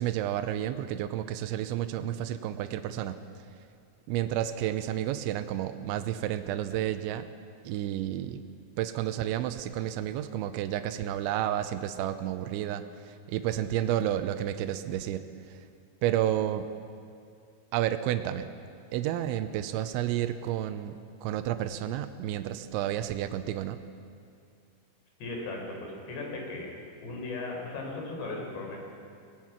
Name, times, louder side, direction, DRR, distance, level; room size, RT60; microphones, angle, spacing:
voice 1, 0.0-3.2 4.1-7.3 7.7-8.4 8.8-15.6 16.0-16.7 17.7-18.5 18.9-23.8, right 12 dB, 85° right, 9 dB, 3.1 m, -31 dB
voice 2, 25.2-26.7 27.0-28.8, left 2 dB, 65° left, 0 dB, 6.1 m, -37 dB
24.5 x 19.0 x 6.0 m, 2.3 s
omnidirectional pair, 5.3 m